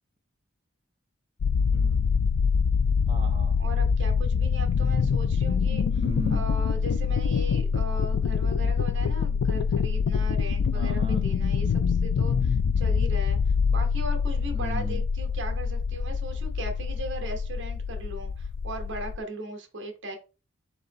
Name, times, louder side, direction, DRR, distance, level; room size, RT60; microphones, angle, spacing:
sound 1, 1.4-19.2, left 6 dB, 85° left, 0.4 m, -25 dB
voice 1, 1.7-2.1 3.1-3.6 6.0-6.4 10.7-11.2 14.5-15.0, right 1 dB, 25° right, 0.7 m, -36 dB
voice 2, 3.6-6.0 6.3-13.4 13.7-20.2, right 1 dB, 55° right, 1.0 m, -38 dB
4.0 x 2.9 x 4.0 m
head